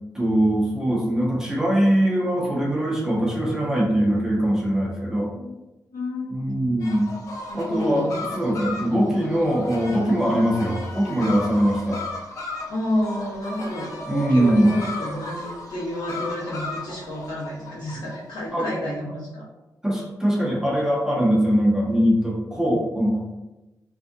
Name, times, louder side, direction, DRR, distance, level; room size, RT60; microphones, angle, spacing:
voice 1, 0.1-5.3 6.3-7.1 7.5-12.0 14.1-14.7 18.5-18.7 19.8-23.2, equal, 10° right, -4 dB, 0.5 m, -22 dB
voice 2, 5.9-6.3 7.4-8.2 8.7-8.9 10.4-10.5 12.7-19.4, left 1 dB, 70° left, -7 dB, 1.1 m, -30 dB
sound 1, 6.8-18.2, left 2 dB, 45° left, 0.5 m, -35 dB
2.6 x 2.3 x 2.5 m, 1.0 s
wide cardioid pair, 165°, 7 cm